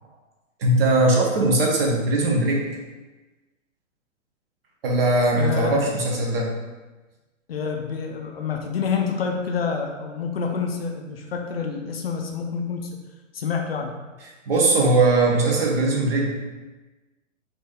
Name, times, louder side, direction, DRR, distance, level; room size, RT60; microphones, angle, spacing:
voice 1, 0.6-2.6 4.8-6.5 14.5-16.3, right 2 dB, 45° right, -1 dB, 1.0 m, -20 dB
voice 2, 5.4-5.8 7.5-13.0 13.3-13.9, left 5 dB, 50° left, 2 dB, 0.6 m, -27 dB
4.5 x 2.8 x 3.6 m, 1.2 s
figure-of-eight pair, 120°, 40 cm